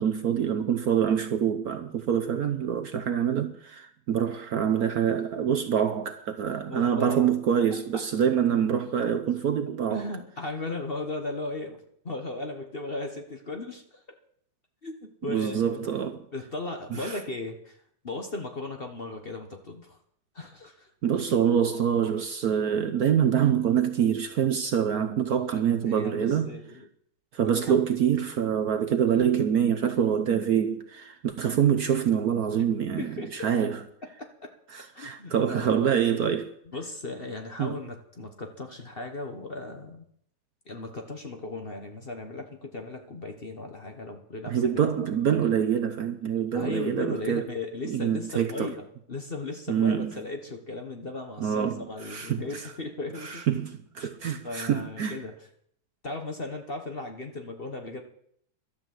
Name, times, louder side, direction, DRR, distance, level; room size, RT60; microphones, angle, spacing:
voice 1, 0.0-10.0 15.3-16.2 16.9-17.1 21.0-26.5 27.3-33.8 34.7-36.5 37.6-37.8 44.5-47.4 47.8-48.7 49.7-50.1 51.4-52.4 53.2-55.2, right 8 dB, 60° right, 1.1 m, -25 dB
voice 2, 6.7-7.3 9.9-14.0 14.8-15.9 16.3-17.8 18.0-20.0 20.3-20.9 25.5-26.9 27.4-27.8 32.6-32.7 33.0-33.5 34.2-34.5 34.9-35.7 36.7-40.0 40.7-44.6 46.5-48.8 49.1-53.4 54.0-54.1 54.4-55.3 56.0-58.0, left 2 dB, 35° left, 1.2 m, -37 dB
12.0 x 10.5 x 7.7 m
omnidirectional pair, 2.1 m